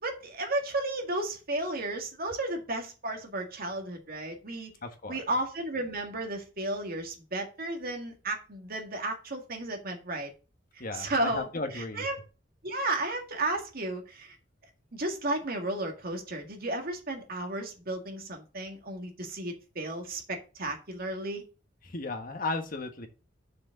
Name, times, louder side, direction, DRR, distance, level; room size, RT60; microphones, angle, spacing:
voice 1, 0.0-4.7 5.1-10.3 10.9-11.5 11.7-12.2 12.6-14.4 14.9-21.4, right 2 dB, 50° right, 1.9 m, -33 dB
voice 2, 4.8-5.2 10.8-12.1 21.8-23.1, left 3 dB, 50° left, 1.3 m, -35 dB
6.5 x 4.9 x 6.5 m
head